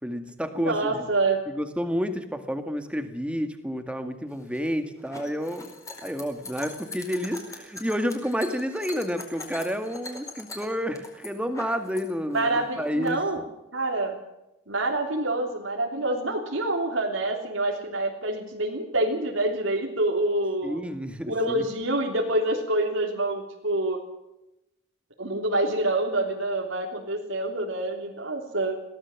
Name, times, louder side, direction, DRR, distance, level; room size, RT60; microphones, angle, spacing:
voice 1, 0.0-1.0 1.5-5.7 6.0-13.2 20.6-21.6, equal, 5° right, 8 dB, 2.0 m, -30 dB
voice 2, 0.6-1.4 12.3-13.4 13.7-14.2 14.7-20.8 21.3-24.0 25.2-28.7, right 2 dB, 75° right, 0 dB, 3.4 m, -26 dB
sound 1, 4.3-12.0 12.3-13.1, left 2 dB, 15° left, 4.6 m, -42 dB
22.5 x 17.0 x 7.3 m, 0.90 s
head